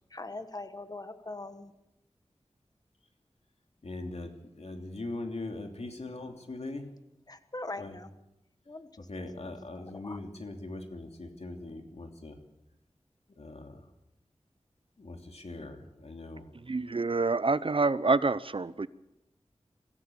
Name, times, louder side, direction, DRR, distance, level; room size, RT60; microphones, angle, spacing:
voice 1, 0.1-1.7 7.3-8.1 8.7-9.1 9.4-10.2, left 2 dB, 35° left, 10 dB, 1.4 m, -42 dB
voice 2, 3.8-6.9 7.8-8.0 9.1-12.4 13.3-13.9 15.0-16.5, left 2 dB, 70° left, 4 dB, 3.0 m, -41 dB
voice 3, 16.7-18.9, right 3 dB, 55° right, 16 dB, 0.7 m, -27 dB
24.0 x 16.0 x 7.2 m, 0.89 s
wide cardioid pair, 65°, 11 cm